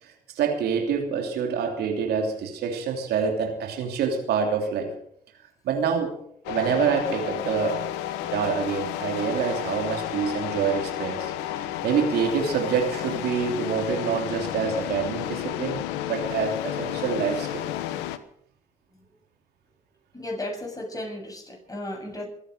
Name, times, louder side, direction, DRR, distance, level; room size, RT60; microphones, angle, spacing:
voice 1, 0.0-4.9 5.6-6.1 6.5-7.9 8.3-11.3 11.8-17.6, right 6 dB, 70° right, 3 dB, 3.1 m, -26 dB
sound 1, 6.5-18.2, left 12 dB, 80° left, 1.1 m, -32 dB
voice 2, 20.1-22.2, left 1 dB, 20° left, 2 dB, 7.6 m, -34 dB
23.0 x 9.0 x 6.5 m, 0.66 s
hypercardioid pair, 60°, 17 cm